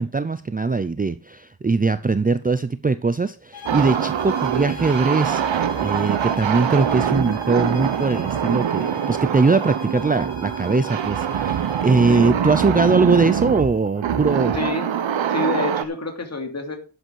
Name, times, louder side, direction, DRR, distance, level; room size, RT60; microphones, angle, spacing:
voice 1, 0.0-5.4 5.8-14.6, right 4 dB, 20° right, 12 dB, 0.6 m, -21 dB
sound 1, 3.5-12.2, left 4 dB, 50° left, 4.8 m, -41 dB
sound 2, 3.7-15.8, right 8 dB, 90° right, 1.1 m, -24 dB
voice 2, 12.1-12.6 14.5-14.9 15.3-16.8, left 2 dB, 35° left, 4 dB, 2.9 m, -28 dB
11.5 x 8.0 x 4.7 m, 0.37 s
wide cardioid pair, 115°, 44 cm